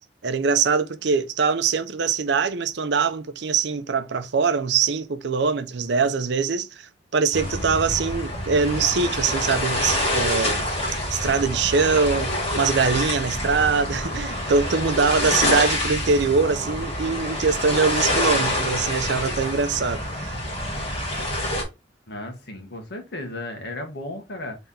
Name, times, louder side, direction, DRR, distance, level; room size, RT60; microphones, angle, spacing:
voice 1, 0.2-10.7 11.1-20.3, right 5 dB, 65° right, 0.5 m, -23 dB
sound 1, 7.3-21.6, left 1 dB, 35° left, 1.9 m, -26 dB
voice 2, 22.1-24.6, left 1 dB, 65° left, 1.4 m, -34 dB
4.2 x 3.4 x 3.6 m
head